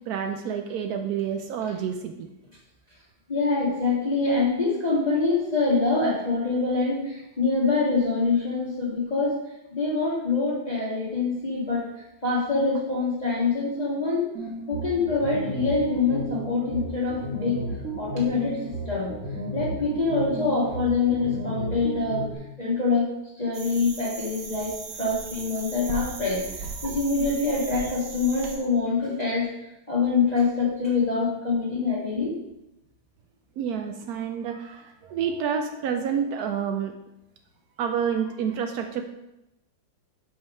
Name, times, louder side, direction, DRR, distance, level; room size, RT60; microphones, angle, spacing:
voice 1, 0.1-2.3 33.6-36.9 37.8-39.1, right 7 dB, 90° right, 5 dB, 0.8 m, -29 dB
voice 2, 3.3-9.4 9.7-11.8 12.2-14.3 14.7-17.6 18.0-18.6 18.9-19.1 19.5-22.3 22.6-23.1 23.4-24.7 25.0-26.4 26.8-29.5 29.9-32.3, left 4 dB, 20° left, -7 dB, 1.7 m, -25 dB
sound 1, 14.3-22.3, right 1 dB, 45° right, 1.7 m, -33 dB
sound 2, 23.5-28.6, right 4 dB, 60° right, 1.6 m, -37 dB
5.6 x 5.5 x 5.5 m, 0.91 s
omnidirectional pair, 2.2 m